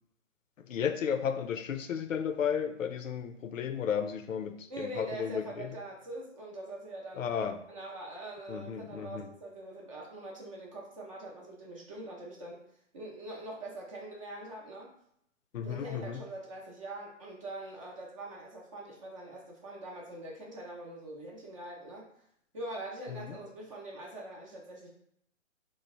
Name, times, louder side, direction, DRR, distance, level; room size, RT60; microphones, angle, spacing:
voice 1, 0.7-5.8 7.2-7.6 8.5-9.3 15.5-16.2 23.1-23.4, left 7 dB, 85° left, 8 dB, 0.5 m, -34 dB
voice 2, 4.7-7.2 7.7-12.6 12.9-14.9 15.6-22.0 22.5-24.9, right 1 dB, 25° right, -2 dB, 0.6 m, -43 dB
3.1 x 2.0 x 3.8 m, 0.72 s
figure-of-eight pair, 140°, 38 cm